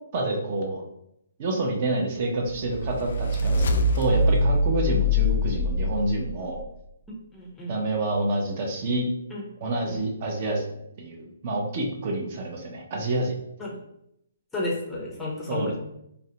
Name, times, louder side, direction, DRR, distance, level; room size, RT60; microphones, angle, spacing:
voice 1, 0.1-0.8 1.4-6.6 7.7-9.1 9.6-10.6 11.0-13.4 15.5-15.8, right 2 dB, 40° right, 0 dB, 0.5 m, -28 dB
sound 1, 2.4-6.6, left 1 dB, 60° left, 0.3 m, -24 dB
voice 2, 7.3-7.7 9.3-9.4 9.9-10.0 13.6-13.8 14.5-15.8, left 2 dB, 10° left, -4 dB, 0.5 m, -32 dB
2.4 x 2.0 x 2.8 m, 0.77 s
hypercardioid pair, 155°, 0 cm